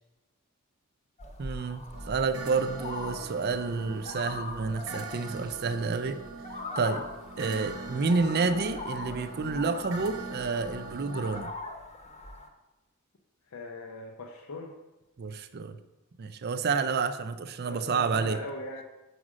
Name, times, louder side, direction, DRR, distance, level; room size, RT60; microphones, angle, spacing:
sound 1, 1.2-12.5, left 2 dB, 30° left, 0.9 m, -42 dB
voice 1, 1.4-1.8 2.1-6.2 6.8-7.1 7.4-11.5 15.2-15.8 16.2-18.4, right 4 dB, 45° right, 11 dB, 0.5 m, -29 dB
sound 2, 1.9-11.4, right 3 dB, 70° right, 0.8 m, -42 dB
voice 2, 13.5-14.8 17.7-18.8, left 2 dB, 80° left, 1 dB, 0.7 m, -40 dB
6.3 x 5.0 x 6.2 m, 1.0 s
head